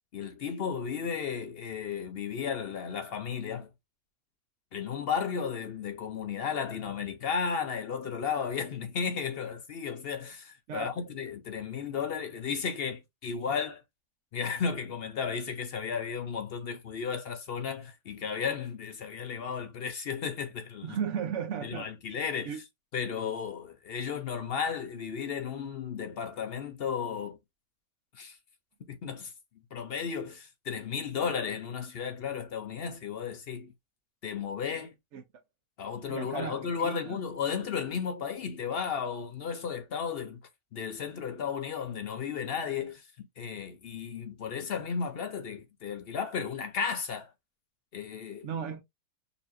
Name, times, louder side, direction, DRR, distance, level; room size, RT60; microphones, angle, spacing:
voice 1, 0.1-3.7 4.7-13.8 14.3-21.0 21.6-22.5 22.9-27.4 28.1-28.4 28.9-29.3 29.7-33.7 34.2-34.9 35.8-40.4 40.7-47.3 47.9-48.5, left 6 dB, 60° left, 0.6 m, -34 dB
voice 2, 10.7-11.0 20.8-22.6 35.1-35.2 36.1-37.2 48.4-48.8, right 7 dB, 65° right, 0.9 m, -36 dB
4.1 x 2.9 x 2.5 m
omnidirectional pair, 1.5 m